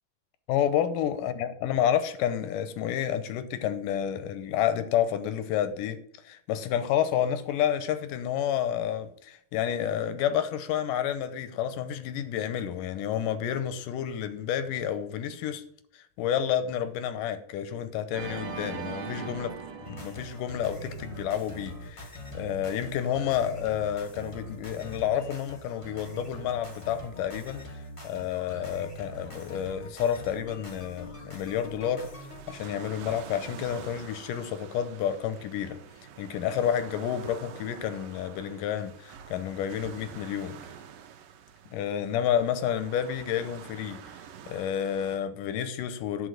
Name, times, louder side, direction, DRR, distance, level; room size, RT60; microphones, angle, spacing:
voice 1, 0.5-6.0 6.2-15.6 15.9-35.8 36.2-40.6 41.7-44.0 44.5-46.3, left 9 dB, 85° left, 2.4 m, -30 dB
Organ, 18.1-21.2, right 5 dB, 55° right, 1.5 m, -39 dB
sound 1, 19.8-32.5, equal, 30° left, 0.5 m, -43 dB
sound 2, 32.3-45.2, right 8 dB, 85° right, 2.6 m, -47 dB
10.5 x 4.8 x 6.5 m
omnidirectional pair, 3.8 m